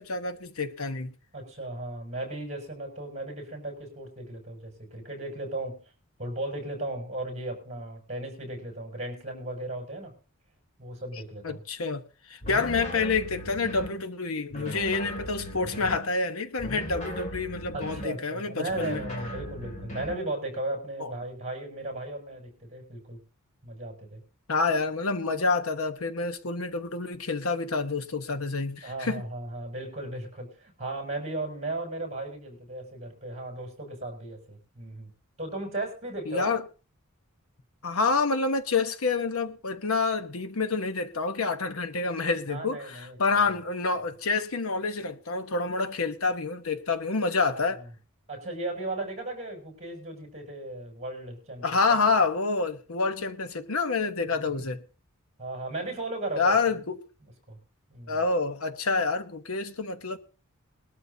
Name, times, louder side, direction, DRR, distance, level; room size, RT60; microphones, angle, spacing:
voice 1, 0.0-1.1 11.4-12.0 12.3-19.0 21.0-21.1 24.5-29.2 36.3-36.6 37.8-47.8 51.6-54.8 56.4-57.0 58.1-60.2, left 4 dB, 70° left, 1.1 m, -28 dB
voice 2, 1.3-5.8 6.2-10.1 10.8-11.6 15.7-15.9 17.7-23.2 23.6-24.2 28.8-35.1 35.4-36.6 42.5-43.4 47.4-47.9 48.3-51.8 54.3-54.7 55.4-56.8 57.5-57.6 57.9-58.2, right 2 dB, 30° right, 6.5 m, -36 dB
sound 1, 12.4-14.0 14.5-16.1 16.6-18.2 18.7-20.3, equal, 35° left, 3.2 m, -38 dB
21.0 x 12.5 x 2.8 m
head